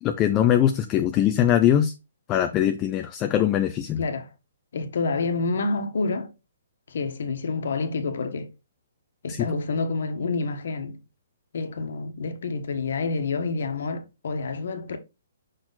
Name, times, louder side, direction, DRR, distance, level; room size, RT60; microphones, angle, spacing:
voice 1, 0.0-1.9 2.3-4.0 9.3-9.4, left 10 dB, 15° left, 0.4 m, -22 dB
voice 2, 4.7-6.3 6.9-8.5 9.2-11.0 11.5-15.0, left 3 dB, 60° left, 1.3 m, -28 dB
6.2 x 4.2 x 4.0 m
hypercardioid pair, 170°, 0 cm